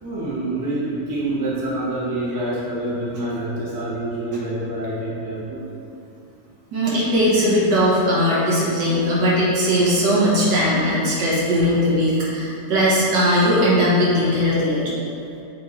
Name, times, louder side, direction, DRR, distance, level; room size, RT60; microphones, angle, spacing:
voice 1, 0.0-5.8 10.5-10.8 11.6-11.8, right 1 dB, 30° right, -7 dB, 0.4 m, -27 dB
voice 2, 6.7-14.9, equal, 80° right, -7 dB, 1.7 m, -19 dB
6.7 x 3.1 x 2.5 m, 2.6 s
omnidirectional pair, 1.9 m